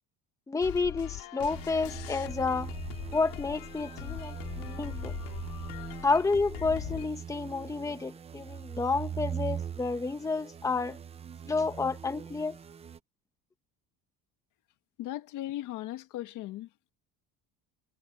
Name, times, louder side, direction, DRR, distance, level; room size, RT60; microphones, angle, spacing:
voice 1, 0.5-2.7 3.1-5.1 6.0-11.0 11.5-12.6, left 4 dB, 10° left, 1.3 m, -30 dB
sound 1, 0.6-7.1, left 19 dB, 80° left, 2.4 m, -41 dB
sound 2, 1.5-13.0, right 8 dB, 20° right, 0.5 m, -41 dB
voice 2, 15.0-16.7, left 14 dB, 60° left, 1.8 m, -37 dB
cardioid pair, 170°, 34 cm